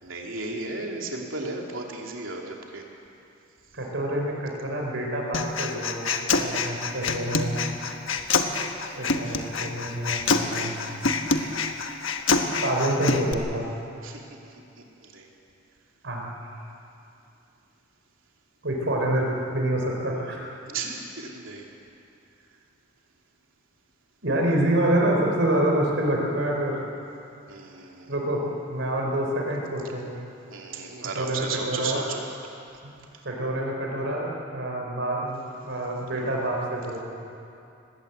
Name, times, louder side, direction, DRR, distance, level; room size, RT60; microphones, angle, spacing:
voice 1, 0.0-2.8 14.0-14.3 15.0-15.3 20.7-21.7 27.5-28.1 30.5-32.5, right 3 dB, 85° right, 0 dB, 2.9 m, -34 dB
voice 2, 3.7-7.6 9.0-10.9 12.6-13.7 16.0-16.3 18.6-20.4 24.2-26.7 28.1-28.4 28.7-30.2 31.2-32.0 32.8-32.9 33.2-37.0, right 1 dB, 65° right, -1 dB, 4.4 m, -27 dB
Human voice, 5.3-13.3, left 4 dB, 80° left, 1.3 m, -26 dB
20.5 x 17.0 x 8.3 m, 2.6 s
head